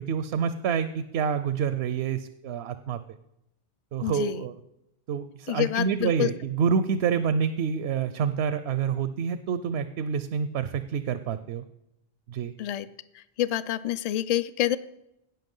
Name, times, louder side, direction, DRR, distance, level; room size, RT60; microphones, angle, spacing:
voice 1, 0.0-3.0 3.9-4.5 5.1-11.6 12.3-12.5, right 7 dB, 85° right, 12 dB, 0.8 m, -27 dB
voice 2, 4.0-4.4 5.5-6.3 12.6-12.9 13.4-14.8, left 12 dB, 50° left, 15 dB, 0.5 m, -27 dB
17.0 x 5.8 x 5.4 m, 0.86 s
omnidirectional pair, 1.1 m